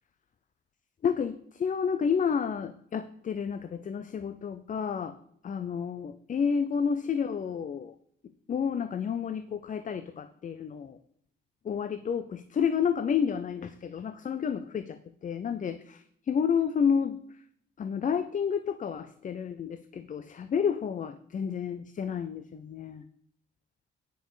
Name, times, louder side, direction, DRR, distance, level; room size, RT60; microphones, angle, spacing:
voice 1, 1.0-5.2 5.4-7.9 8.5-11.0 11.6-17.2 17.8-23.0, left 7 dB, 40° left, 12 dB, 0.6 m, -30 dB
9.3 x 6.4 x 4.9 m, 0.66 s
cardioid pair, 90°, 20 cm